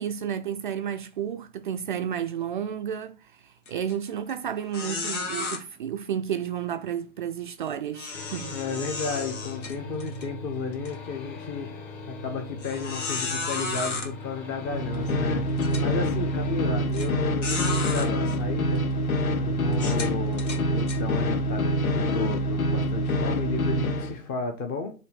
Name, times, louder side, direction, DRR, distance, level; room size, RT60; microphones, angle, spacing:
voice 1, 0.0-8.6 16.9-17.0, right 9 dB, 40° right, 0.4 m, -32 dB
sound 1, 3.7-3.9 4.3-4.4 4.7-5.6 7.9-10.3 10.7-10.9 11.5-11.6 12.6-14.1 14.9-15.0 15.6-15.9 16.9-17.1 17.4-18.1 18.8-18.9 19.7-21.0, left 4 dB, 60° left, 2.2 m, -33 dB
sound 2, 8.1-16.7, left 1 dB, 40° left, 2.5 m, -40 dB
voice 2, 8.5-11.7 12.1-15.5 15.8-18.8 19.4-24.9, left 5 dB, 20° left, 0.8 m, -33 dB
sound 3, 14.6-24.2, equal, 85° left, 0.8 m, -26 dB
6.7 x 2.7 x 5.4 m
figure-of-eight pair, 115°, 41 cm